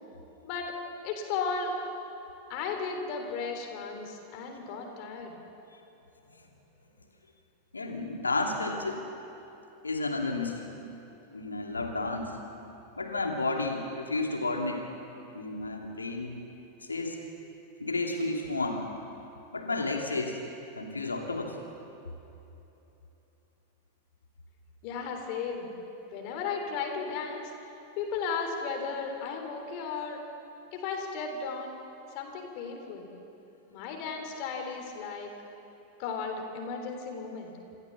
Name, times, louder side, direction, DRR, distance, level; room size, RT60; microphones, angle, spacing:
voice 1, 1.0-1.7 2.5-5.4 24.8-25.7 26.1-27.5 28.0-30.2 30.7-31.7 32.1-33.1 33.7-35.3 36.0-37.5, left 5 dB, 45° left, 3 dB, 3.6 m, -35 dB
voice 2, 7.7-9.0 9.8-10.7 11.3-12.3 13.0-14.9 15.3-16.4 16.8-17.2 17.8-18.9 19.5-20.4 20.7-21.6, left 2 dB, 80° left, 2 dB, 2.7 m, -32 dB
27.5 x 15.5 x 7.2 m, 3.0 s
figure-of-eight pair, 90°, 0 cm